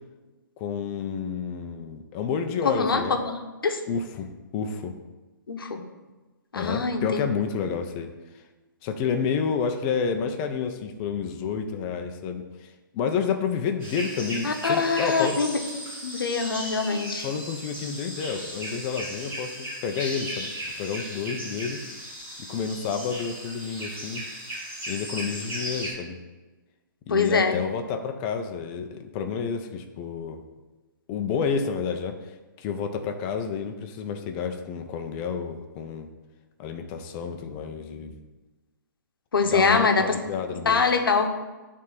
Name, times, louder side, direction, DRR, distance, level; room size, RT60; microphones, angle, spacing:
voice 1, 0.6-3.2 3.9-4.9 6.5-8.1 8.8-12.7 12.9-15.4 17.2-19.6 19.8-21.8 22.5-24.2 24.9-26.2 27.1-30.4 31.1-32.2 32.6-36.1 36.6-38.2 39.4-41.0, left 6 dB, 30° left, 5 dB, 0.8 m, -30 dB
voice 2, 2.6-3.8 5.5-5.8 6.5-7.2 14.4-15.5 16.0-17.3 27.1-27.5 39.3-40.1 40.6-41.3, left 4 dB, 85° left, 5 dB, 1.1 m, -24 dB
sound 1, 13.8-25.9, equal, 20° right, 2.7 m, -36 dB
9.2 x 3.7 x 5.7 m, 1.2 s
hypercardioid pair, 145°, 12 cm